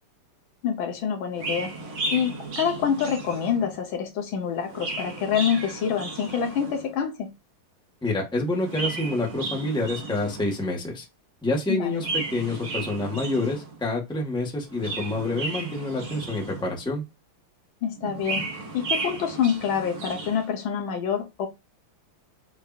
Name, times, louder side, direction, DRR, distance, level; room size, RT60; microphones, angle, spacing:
voice 1, 0.6-1.7 2.1-7.3 11.7-11.9 17.8-18.5 18.7-21.5, left 7 dB, 75° left, 1.6 m, -26 dB
Chirp tweet, 1.3-3.8 4.5-6.9 8.5-10.7 11.9-13.8 14.6-16.9 18.0-20.5, right 3 dB, 70° right, 2.7 m, -34 dB
voice 2, 8.0-11.0 11.4-17.0, left 2 dB, 5° left, 1.1 m, -27 dB
6.5 x 2.7 x 2.4 m
omnidirectional pair, 2.4 m